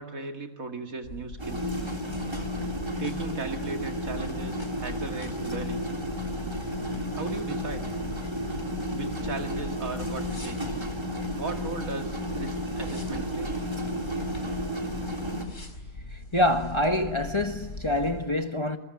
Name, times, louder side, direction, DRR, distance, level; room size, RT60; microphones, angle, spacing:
voice 1, 0.0-1.8 3.0-5.9 7.1-7.9 8.9-10.8 11.4-13.6, right 3 dB, 75° right, 2.5 m, -37 dB
sound 1, 1.0-18.3, left 2 dB, 55° left, 4.6 m, -41 dB
sound 2, 1.4-15.4, equal, 20° right, 3.5 m, -33 dB
Growling, 9.7-16.0, equal, 75° left, 8.5 m, -52 dB
voice 2, 16.1-18.8, left 1 dB, 20° left, 1.3 m, -26 dB
27.0 x 21.5 x 9.6 m
omnidirectional pair, 1.5 m